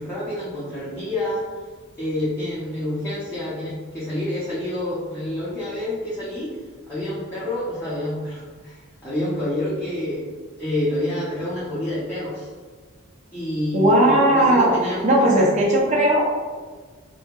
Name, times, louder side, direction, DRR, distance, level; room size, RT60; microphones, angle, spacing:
voice 1, 0.0-1.4 2.0-6.5 6.9-10.2 10.6-12.5 13.3-15.5, left 1 dB, 10° left, -12 dB, 0.6 m, -28 dB
voice 2, 13.7-14.7 15.0-16.2, right 1 dB, 35° right, -3 dB, 0.5 m, -17 dB
2.7 x 2.6 x 2.2 m, 1.5 s
head